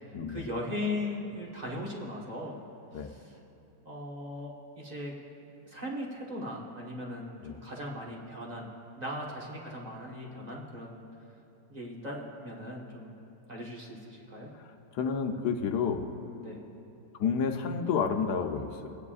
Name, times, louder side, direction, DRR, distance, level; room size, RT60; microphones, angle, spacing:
voice 1, 0.0-2.6 2.9-3.4 3.8-5.1 5.7-8.7 9.0-11.0 11.7-13.1 13.5-14.5 16.4-16.6, left 1 dB, 25° right, -3 dB, 1.4 m, -38 dB
voice 2, 14.9-16.1 17.2-19.0, left 6 dB, 75° left, 4 dB, 1.3 m, -30 dB
28.0 x 9.5 x 2.5 m, 2.9 s
omnidirectional pair, 1.8 m